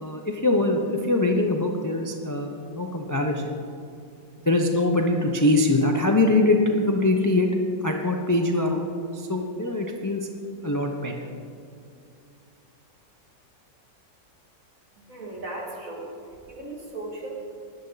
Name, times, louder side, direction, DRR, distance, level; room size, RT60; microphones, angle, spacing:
voice 1, 0.0-3.6 4.4-7.5 7.8-10.3 10.6-11.3, left 2 dB, 25° left, 2 dB, 0.4 m, -23 dB
voice 2, 15.0-17.3, right 2 dB, 50° right, -2 dB, 2.7 m, -37 dB
17.0 x 11.0 x 4.1 m, 2.5 s
omnidirectional pair, 1.9 m